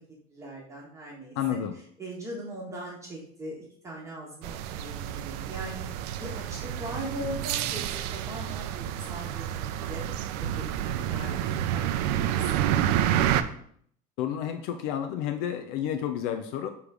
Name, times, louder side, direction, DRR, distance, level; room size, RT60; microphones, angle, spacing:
voice 1, 0.3-5.8 6.2-10.0 10.4-12.7, right 1 dB, 15° right, -3 dB, 1.3 m, -40 dB
voice 2, 1.4-1.8 14.2-16.7, left 9 dB, 60° left, 8 dB, 0.6 m, -30 dB
sound 1, 4.4-13.4, right 11 dB, 85° right, 0.5 m, -29 dB
7.0 x 3.3 x 5.0 m, 0.63 s
cardioid pair, 165°, 20 cm